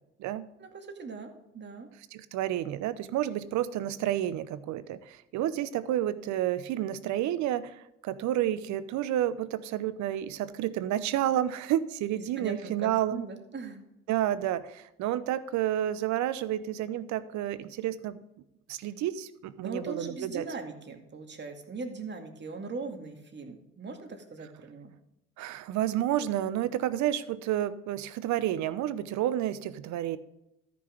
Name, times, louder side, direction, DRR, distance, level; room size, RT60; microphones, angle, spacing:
voice 1, 0.6-1.9 12.4-13.8 19.6-24.9, right 4 dB, 35° right, 3 dB, 2.3 m, -40 dB
voice 2, 2.1-13.2 14.1-18.2 18.7-20.5 25.4-30.2, right 12 dB, 65° right, 15 dB, 0.8 m, -30 dB
13.5 x 6.1 x 5.2 m, 0.87 s
hypercardioid pair, 60°, 32 cm